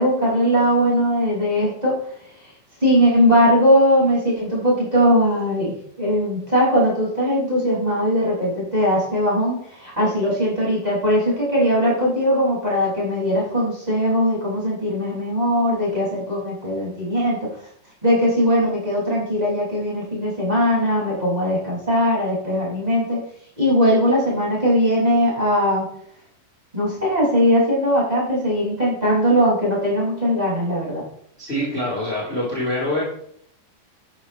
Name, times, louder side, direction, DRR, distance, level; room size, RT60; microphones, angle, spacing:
voice 1, 0.0-2.0 2.8-17.5 18.0-23.2 23.6-25.9 26.7-31.0, equal, 10° right, -6 dB, 5.9 m, -20 dB
voice 2, 31.4-33.0, left 1 dB, 15° left, -6 dB, 3.8 m, -25 dB
13.0 x 12.0 x 3.2 m, 0.66 s
omnidirectional pair, 4.2 m